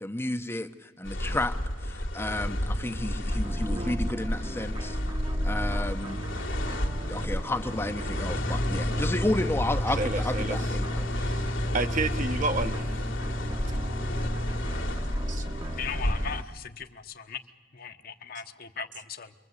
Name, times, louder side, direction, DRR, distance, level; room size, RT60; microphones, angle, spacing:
voice 1, 0.0-1.5 1.8-5.0 5.4-6.2 7.1-11.1, left 1 dB, 15° left, 7 dB, 0.9 m, -32 dB
sound 1, 1.0-16.4, left 1 dB, 80° left, 2.5 m, -30 dB
sound 2, 3.3-16.4, right 1 dB, 25° right, 1.2 m, -41 dB
voice 2, 10.0-10.6 11.2-11.5 11.7-12.9 15.3-15.4, right 3 dB, 40° right, 6 dB, 1.3 m, -30 dB
voice 3, 15.7-17.4 17.7-19.3, left 6 dB, 50° left, 6 dB, 1.3 m, -38 dB
29.0 x 23.0 x 8.3 m, 1.1 s
head